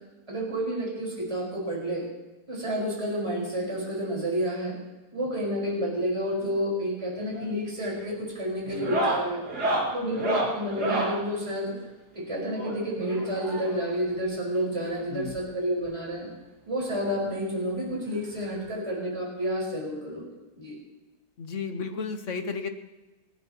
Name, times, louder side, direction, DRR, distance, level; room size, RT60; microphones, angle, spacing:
voice 1, 0.3-2.1 2.5-4.7 5.1-9.4 9.9-11.7 12.1-16.3 16.6-20.2 20.6-20.7, equal, 15° right, -5 dB, 4.8 m, -30 dB
sound 1, 7.2-7.5 7.8-8.1 8.7-11.2 12.5-13.9 15.0-15.1 15.3-15.4 15.8-15.9 17.2-17.3 18.7-18.8, right 1 dB, 65° right, 2.7 m, -30 dB
voice 2, 21.4-22.7, left 5 dB, 50° left, 7 dB, 1.3 m, -33 dB
28.5 x 9.9 x 3.0 m, 1.1 s
omnidirectional pair, 1.8 m